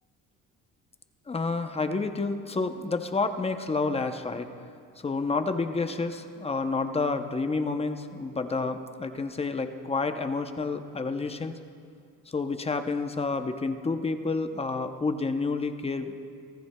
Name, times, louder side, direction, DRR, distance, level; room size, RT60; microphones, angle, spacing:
voice 1, 1.3-4.5 5.0-11.6 12.3-16.2, left 3 dB, 15° left, 8 dB, 0.6 m, -29 dB
25.0 x 15.5 x 2.2 m, 2.5 s
cardioid pair, 120°, 36 cm